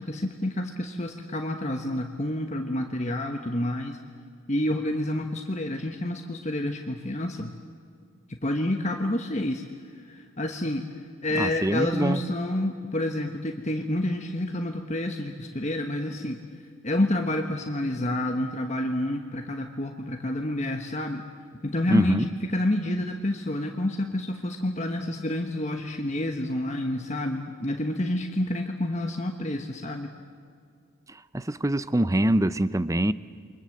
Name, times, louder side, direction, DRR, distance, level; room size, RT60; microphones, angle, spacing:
voice 1, 0.0-4.0 4.5-7.5 8.4-9.6 9.9-10.8 11.2-16.4 16.8-21.2 21.6-30.1, left 1 dB, 35° left, 4 dB, 1.3 m, -28 dB
voice 2, 11.3-12.2 21.9-22.3 31.1-33.1, right 1 dB, 15° right, 15 dB, 0.6 m, -24 dB
29.5 x 23.5 x 7.8 m, 2.2 s
head